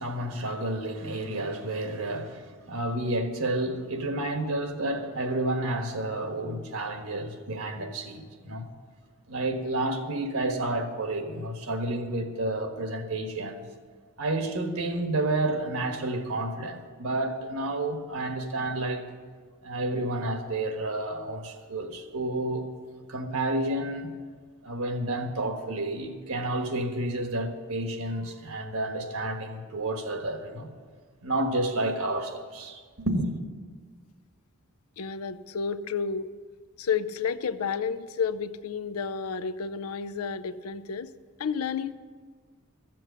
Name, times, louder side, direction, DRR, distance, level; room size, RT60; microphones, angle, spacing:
voice 1, 0.0-8.7 9.3-13.7 14.2-19.1 19.6-22.6 23.1-24.1 24.6-30.7 31.2-33.3, right 1 dB, 75° right, 1.4 m, -30 dB
voice 2, 35.0-36.3 36.8-41.1 41.4-41.9, left 6 dB, 75° left, 0.5 m, -31 dB
13.5 x 7.7 x 6.8 m
head